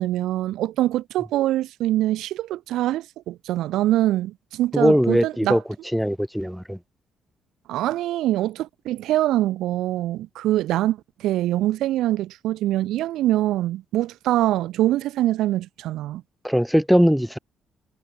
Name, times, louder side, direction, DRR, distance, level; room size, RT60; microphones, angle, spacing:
voice 1, 0.0-5.6 7.7-16.2, right 14 dB, 85° right, 0.8 m, -24 dB
voice 2, 4.7-5.6 5.9-6.8 16.4-17.4, equal, ahead, 0.3 m, -20 dB
cardioid pair, 90°, 0 cm